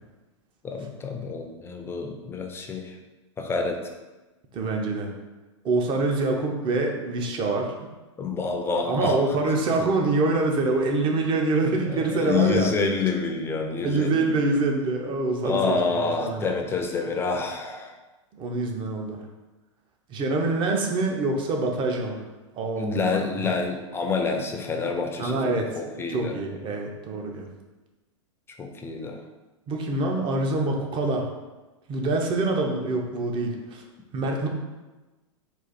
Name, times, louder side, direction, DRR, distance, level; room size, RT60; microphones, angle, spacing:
voice 1, 0.6-2.9 3.4-3.8 8.2-9.2 11.9-14.6 15.4-17.9 22.8-26.3 28.6-29.2, left 4 dB, 15° left, 3 dB, 0.5 m, -28 dB
voice 2, 4.5-5.1 5.6-7.9 8.9-12.7 13.8-16.4 18.3-19.2 20.1-22.2 22.5-23.0 23.4-23.5 25.2-27.5 29.7-31.3 31.9-33.8 34.1-34.5, right 2 dB, 30° right, 2 dB, 0.7 m, -25 dB
4.1 x 2.5 x 4.1 m, 1.1 s
hypercardioid pair, 110°, 16 cm